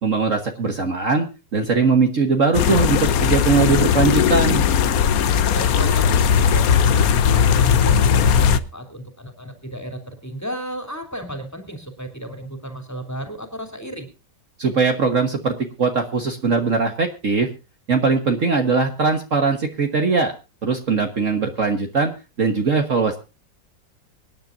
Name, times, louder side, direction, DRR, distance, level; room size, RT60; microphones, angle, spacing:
voice 1, 0.0-4.7 14.6-17.5 17.9-20.3 20.6-22.1 22.4-23.2, right 4 dB, 45° right, 4 dB, 1.7 m, -20 dB
sound 1, 2.5-8.6, left 7 dB, 60° left, 1.2 m, -17 dB
voice 2, 5.4-14.1, right 1 dB, 10° left, 6 dB, 3.0 m, -34 dB
24.5 x 10.5 x 2.6 m, 0.30 s
omnidirectional pair, 1.9 m